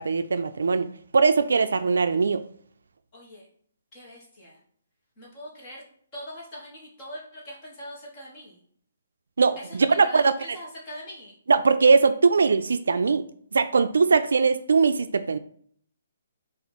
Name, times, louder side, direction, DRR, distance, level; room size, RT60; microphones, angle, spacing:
voice 1, 0.0-2.4 9.4-10.3 11.5-13.2 13.5-15.4, right 4 dB, 80° right, 11 dB, 0.3 m, -21 dB
voice 2, 3.1-3.5 3.9-4.6 5.2-5.8 6.1-8.6 9.6-11.3, equal, 20° left, -4 dB, 1.3 m, -42 dB
4.4 x 2.5 x 4.1 m, 0.62 s
hypercardioid pair, 175°, 0 cm